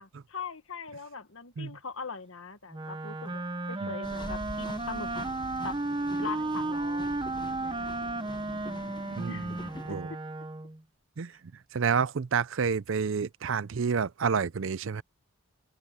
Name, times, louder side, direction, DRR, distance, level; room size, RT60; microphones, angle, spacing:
voice 1, 0.0-3.4 3.7-5.1 5.6-5.8 6.2-7.2 7.5-7.9 9.3-9.5 9.9-10.0, left 5 dB, 65° left, 1.4 m, -41 dB
Wind instrument woodwind instrument, 2.7-10.8, right 2 dB, 20° right, 0.8 m, -34 dB
sound 1, 4.0-9.9, left 1 dB, 20° left, 0.8 m, -44 dB
voice 2, 9.1-9.6 9.9-10.1 11.2-11.4 11.7-15.0, right 6 dB, 60° right, 0.5 m, -29 dB
open air
head